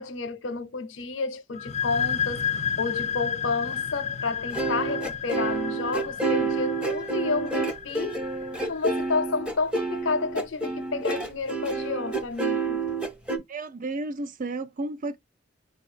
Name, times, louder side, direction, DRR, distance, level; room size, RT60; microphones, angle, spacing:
voice 1, 0.0-8.3 8.7-12.9, left 4 dB, 75° left, 0.7 m, -30 dB
sound 1, 1.5-9.0, left 7 dB, 35° left, 0.3 m, -32 dB
sound 2, 4.5-13.4, right 3 dB, 5° right, 0.7 m, -28 dB
voice 2, 13.5-15.2, right 2 dB, 45° right, 0.4 m, -32 dB
4.5 x 2.3 x 4.2 m
head